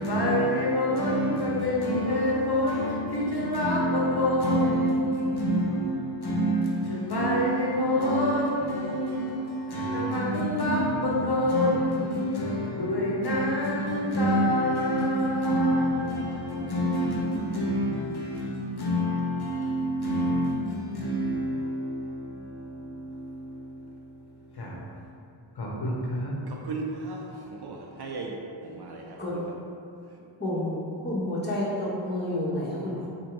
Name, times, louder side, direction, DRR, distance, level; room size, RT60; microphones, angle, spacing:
voice 1, 0.0-24.1 24.5-24.7 25.6-26.3, equal, 50° left, 0.8 m, -26 dB
voice 2, 26.5-28.3 28.6-29.4, right 3 dB, 55° right, 0.5 m, -37 dB
voice 3, 30.4-30.8 31.0-33.1, left 1 dB, 20° left, 1.1 m, -29 dB
3.9 x 2.6 x 4.4 m
wide cardioid pair, 115°, 49 cm